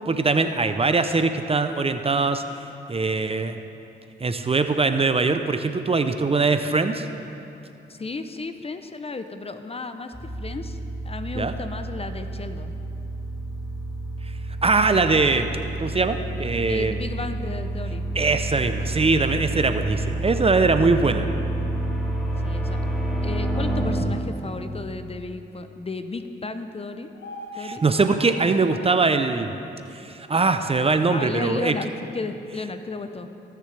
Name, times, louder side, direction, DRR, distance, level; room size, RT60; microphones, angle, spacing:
voice 1, 0.1-2.4 2.9-3.6 4.2-7.1 11.3-11.5 14.6-15.5 15.8-16.9 18.1-21.3 27.6-29.5 29.9-31.7, right 3 dB, 30° right, 8 dB, 0.6 m, -22 dB
voice 2, 7.9-12.7 16.7-18.1 22.4-22.8 23.2-27.1 27.6-27.8 31.1-33.3, left 3 dB, 30° left, 9 dB, 0.7 m, -34 dB
sound 1, 10.1-24.0, right 1 dB, ahead, 1.9 m, -29 dB
sound 2, 27.1-29.0 30.3-31.3, left 1 dB, 65° left, 1.1 m, -41 dB
17.5 x 6.7 x 3.4 m, 2.8 s
cardioid pair, 60°, 20 cm